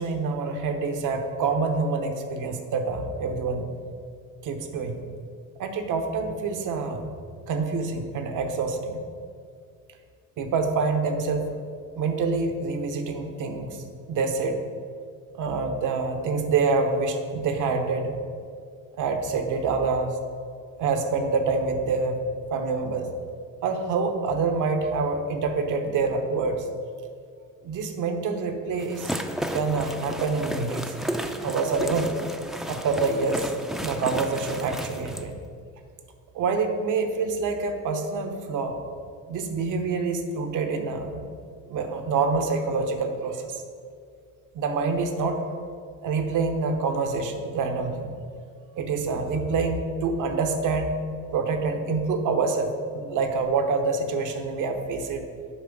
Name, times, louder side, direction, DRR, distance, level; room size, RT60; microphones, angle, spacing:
voice 1, 0.0-3.7 4.4-5.0 5.6-7.1 7.5-9.0 10.4-11.5 12.0-13.8 14.1-14.6 15.4-18.2 19.0-20.1 20.8-22.2 22.5-23.1 23.6-26.6 27.6-29.2 29.5-30.9 31.4-32.2 32.7-33.5 33.8-35.4 36.3-38.8 39.3-41.2 41.7-43.6 44.5-45.4 46.0-48.1 48.7-51.0 51.3-55.3, right 4 dB, 70° right, 6 dB, 0.9 m, -26 dB
sound 1, 28.8-35.3, equal, ahead, 0.4 m, -33 dB
7.4 x 5.2 x 5.1 m, 2.2 s
cardioid pair, 100°, 32 cm